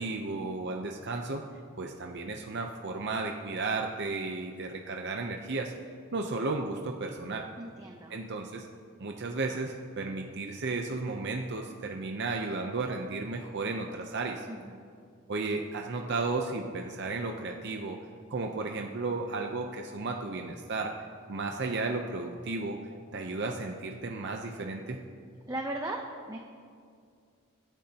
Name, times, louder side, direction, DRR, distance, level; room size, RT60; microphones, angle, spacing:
voice 1, 0.0-1.4 1.8-5.7 6.1-7.4 8.1-8.7 9.0-14.5 15.3-18.0 18.3-20.9 21.3-22.8 23.1-25.0, right 3 dB, 55° right, 2 dB, 0.7 m, -34 dB
voice 2, 7.6-8.2 14.5-14.8 25.5-26.4, right 1 dB, 15° right, 1 dB, 0.7 m, -37 dB
25.0 x 10.5 x 2.9 m, 2.3 s
head